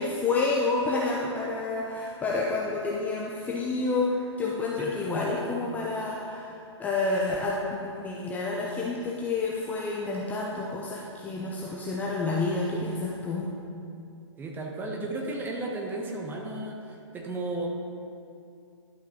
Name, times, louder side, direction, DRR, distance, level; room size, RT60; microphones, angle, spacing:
voice 1, 0.0-13.5, left 3 dB, 10° left, -4 dB, 0.6 m, -29 dB
voice 2, 14.4-17.7, right 2 dB, 10° right, 0 dB, 0.9 m, -34 dB
11.5 x 5.6 x 3.8 m, 2.5 s
hypercardioid pair, 130°, 15 cm